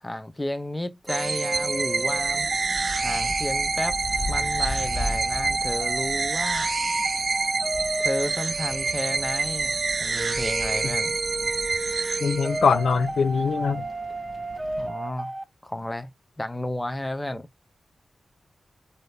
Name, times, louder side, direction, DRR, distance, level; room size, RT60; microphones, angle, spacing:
voice 1, 0.0-2.5 3.0-4.0 4.3-6.7 8.0-9.7 10.0-11.2 14.8-15.3 15.6-16.1 16.4-17.5, left 1 dB, 15° left, 0.7 m, -32 dB
sound 1, 1.1-14.9, left 1 dB, 45° left, 1.4 m, -39 dB
sound 2, 1.1-15.4, right 2 dB, 20° right, 0.6 m, -32 dB
sound 3, 1.1-13.0, right 4 dB, 55° right, 0.4 m, -28 dB
voice 2, 12.2-13.8, left 5 dB, 85° left, 0.4 m, -22 dB
3.7 x 2.8 x 3.3 m
wide cardioid pair, 80°, 0 cm